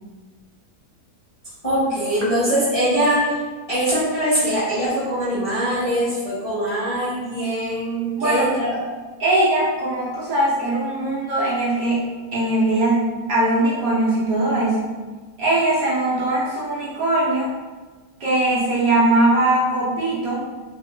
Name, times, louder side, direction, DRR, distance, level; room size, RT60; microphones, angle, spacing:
voice 1, 1.6-3.4 3.7-8.7, equal, 35° left, -13 dB, 0.6 m, -22 dB
voice 2, 8.2-8.5 9.2-12.0 12.3-14.9 15.4-17.5 18.2-20.4, right 1 dB, 70° right, -6 dB, 0.9 m, -20 dB
3.0 x 2.0 x 2.9 m, 1.4 s
omnidirectional pair, 1.8 m